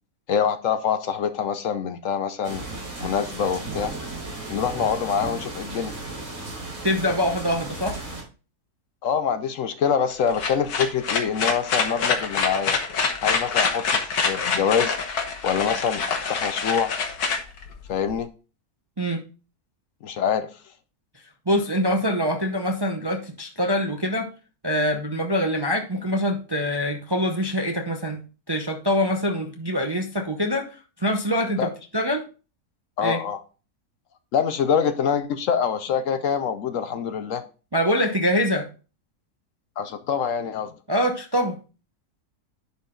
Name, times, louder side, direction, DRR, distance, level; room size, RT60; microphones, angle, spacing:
voice 1, 0.3-2.6 3.0-3.9 4.5-5.9 9.0-12.8 13.2-15.0 15.4-16.9 17.9-18.3 20.0-20.5 31.6-31.7 33.0-33.4 34.3-37.4 39.8-40.7, left 7 dB, 65° left, 1.0 m, -25 dB
sound 1, 2.4-8.2, right 2 dB, 70° right, 3.9 m, -35 dB
voice 2, 6.8-8.0 19.0-19.2 21.5-24.3 24.6-28.2 28.5-32.2 33.0-33.2 37.7-38.7 40.9-41.6, equal, 25° right, 0.5 m, -24 dB
sound 2, 10.1-18.1, left 5 dB, 85° left, 1.7 m, -25 dB
10.5 x 4.3 x 3.7 m
omnidirectional pair, 1.6 m